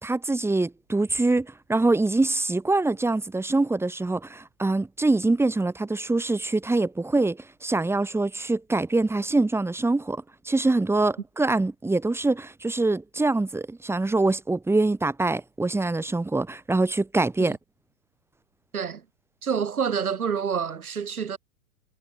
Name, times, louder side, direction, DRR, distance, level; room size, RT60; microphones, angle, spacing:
voice 1, 0.0-17.6, right 2 dB, 5° right, 4.3 m, -24 dB
voice 2, 19.4-21.4, right 7 dB, 80° right, 6.3 m, -27 dB
hypercardioid pair, 115°, 43 cm